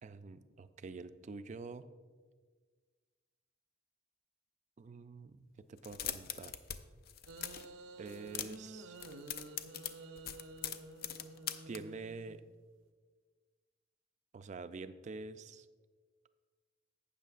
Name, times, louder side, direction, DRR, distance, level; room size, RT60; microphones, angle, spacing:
voice 1, 0.0-1.9 4.8-6.5 8.0-8.9 11.7-12.4 14.3-15.7, right 4 dB, 40° right, 12 dB, 0.4 m, -46 dB
sound 1, 5.8-6.8 7.0-7.7 8.1-8.7 9.0-11.8, left 10 dB, 50° left, 0.4 m, -41 dB
sound 2, 7.3-12.6, right 2 dB, 85° right, 0.7 m, -51 dB
12.0 x 8.3 x 2.5 m, 1.5 s
head